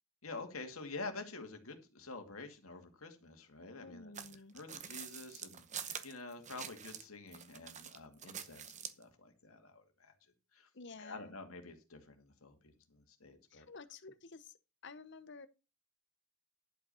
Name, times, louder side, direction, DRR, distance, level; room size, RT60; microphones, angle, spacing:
voice 1, 0.2-4.1 4.5-10.1 10.5-10.7 11.0-13.7, left 3 dB, 85° left, 2.3 m, -48 dB
voice 2, 3.8-4.5 10.7-11.4 13.5-14.5 14.8-15.5, left 3 dB, 55° left, 1.0 m, -51 dB
sound 1, 4.1-7.1 7.3-9.0, right 8 dB, 35° right, 0.9 m, -46 dB
11.5 x 5.3 x 7.0 m
head